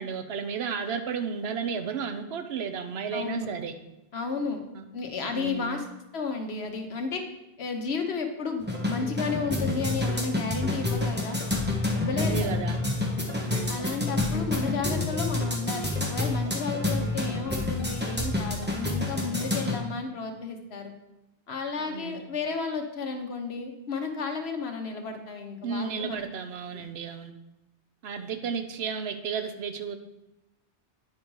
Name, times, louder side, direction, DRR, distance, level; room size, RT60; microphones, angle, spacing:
voice 1, 0.0-3.7 4.7-4.9 5.3-5.8 12.2-12.8 13.4-13.9 21.8-22.3 25.6-27.3 28.0-30.0, right 6 dB, 85° right, 8 dB, 0.9 m, -33 dB
voice 2, 3.1-3.5 4.1-4.6 4.9-5.9 6.1-7.2 7.6-11.4 12.0-12.6 13.7-20.9 21.5-26.2 26.7-26.8, left 4 dB, 85° left, 4 dB, 1.3 m, -32 dB
sound 1, 8.6-19.8, left 2 dB, 10° right, 1.2 m, -28 dB
9.3 x 5.2 x 4.7 m, 0.94 s
omnidirectional pair, 1.0 m